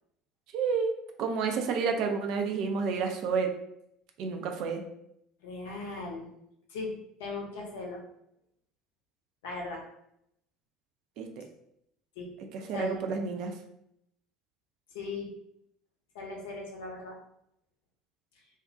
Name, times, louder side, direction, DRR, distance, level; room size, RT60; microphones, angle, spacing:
voice 1, 0.5-3.5 4.2-4.8 11.2-11.4 12.5-13.6, right 5 dB, 55° right, 5 dB, 0.3 m, -30 dB
voice 2, 5.4-6.3 6.7-8.0 9.4-9.8 12.2-12.3 12.7-13.0 14.9-15.3 16.1-17.2, left 3 dB, 65° left, -1 dB, 0.6 m, -38 dB
2.4 x 2.1 x 2.5 m, 0.76 s
figure-of-eight pair, 65°, 0 cm